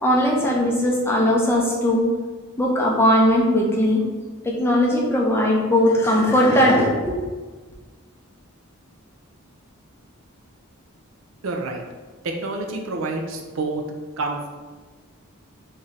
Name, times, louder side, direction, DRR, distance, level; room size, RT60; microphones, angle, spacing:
voice 1, 0.0-2.1 2.6-4.0 4.4-7.2, equal, 10° left, -3 dB, 0.5 m, -19 dB
voice 2, 11.4-11.8 12.2-13.8 14.2-14.5, right 3 dB, 65° right, 3 dB, 0.5 m, -28 dB
3.1 x 2.7 x 3.8 m, 1.3 s
head